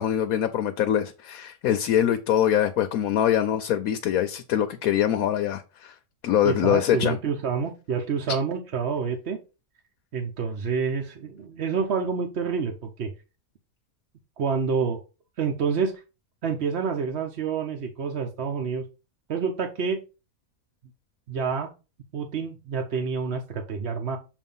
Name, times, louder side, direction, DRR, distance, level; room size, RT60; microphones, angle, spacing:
voice 1, 0.0-5.9 6.2-7.2, left 10 dB, 80° left, 1.1 m, -23 dB
voice 2, 6.4-9.4 10.1-13.1 14.4-15.0 15.4-15.9 16.4-18.8 19.3-20.0 21.3-21.7 22.1-24.2, right 5 dB, 55° right, 1.0 m, -28 dB
7.0 x 2.7 x 5.4 m
omnidirectional pair, 1.5 m